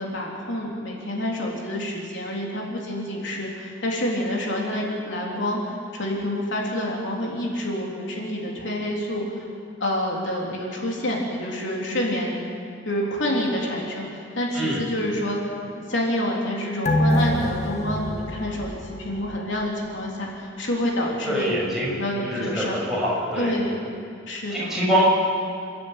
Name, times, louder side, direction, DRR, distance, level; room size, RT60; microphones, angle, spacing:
voice 1, 0.0-9.4 9.8-12.4 12.8-15.4 15.8-22.8 23.4-23.8 24.3-24.8, left 1 dB, 70° left, -2 dB, 3.4 m, -28 dB
sound 1, 16.9-19.8 20.1-20.2, equal, 35° left, 1.6 m, -25 dB
voice 2, 21.3-21.9 22.2-23.5 24.5-25.0, equal, ahead, -7 dB, 6.9 m, -24 dB
29.0 x 11.5 x 8.9 m, 2.3 s
head